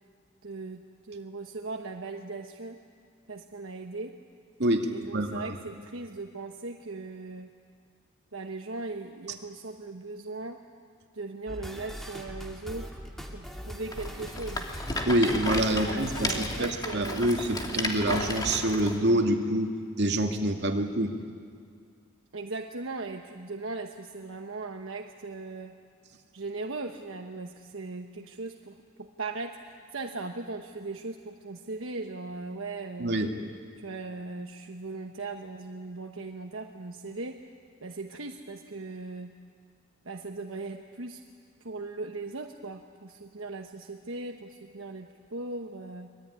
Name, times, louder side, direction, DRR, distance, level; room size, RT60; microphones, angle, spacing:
voice 1, 0.4-2.8 3.3-4.2 4.9-7.5 8.3-10.6 11.1-12.9 13.3-14.6 15.8-17.3 22.3-25.7 26.3-33.2 33.8-37.5 37.8-39.3 40.0-41.2 41.6-46.1, right 3 dB, 75° right, 3 dB, 1.2 m, -38 dB
voice 2, 4.6-5.5 15.1-21.1 33.0-33.4, right 1 dB, 60° right, 2 dB, 2.3 m, -26 dB
sound 1, 11.5-16.6, equal, ahead, 2.6 m, -41 dB
Rattle, 13.9-19.0, left 2 dB, 20° left, 2.4 m, -34 dB
25.0 x 22.0 x 9.7 m, 2.1 s
head